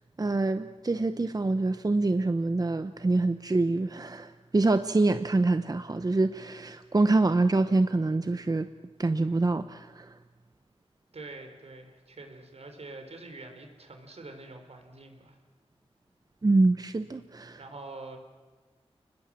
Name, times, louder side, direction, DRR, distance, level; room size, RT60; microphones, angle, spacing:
voice 1, 0.2-8.7 9.0-10.1 16.4-17.6, right 2 dB, 35° right, 10 dB, 0.8 m, -25 dB
voice 2, 11.1-15.4 17.6-18.2, right 2 dB, 75° right, 6 dB, 4.1 m, -45 dB
30.0 x 20.5 x 7.5 m, 1.3 s
wide cardioid pair, 85°, 11 cm